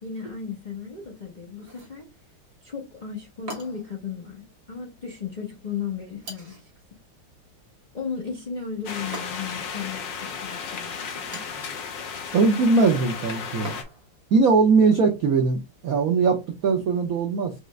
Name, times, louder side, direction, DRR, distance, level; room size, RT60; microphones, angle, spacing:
voice 1, 0.0-2.1 2.6-6.7 7.9-11.0 14.8-15.0, left 6 dB, 35° left, 0.7 m, -35 dB
sound 1, 1.6-2.0 3.5-4.0 6.2-6.7 9.1-9.7 11.1-11.6 13.6-14.2, right 1 dB, 35° right, 1.1 m, -41 dB
sound 2, 8.9-13.8, left 6 dB, 65° left, 1.5 m, -34 dB
voice 2, 12.3-13.8 14.3-17.5, right 4 dB, 80° right, 0.7 m, -20 dB
5.1 x 2.4 x 3.1 m
omnidirectional pair, 2.4 m